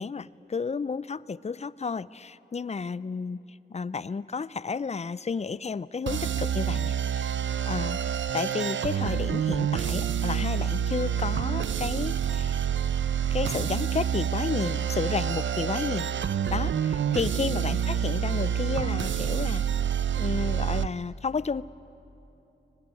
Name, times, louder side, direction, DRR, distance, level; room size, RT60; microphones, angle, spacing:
voice 1, 0.0-7.3 7.7-8.0 8.3-12.7 13.3-16.1 16.5-19.7 20.2-21.6, left 5 dB, 35° left, 19 dB, 0.5 m, -32 dB
sound 1, 6.1-20.9, right 8 dB, 85° right, 0.6 m, -27 dB
23.5 x 19.0 x 9.7 m, 3.0 s
cardioid pair, 55°, 19 cm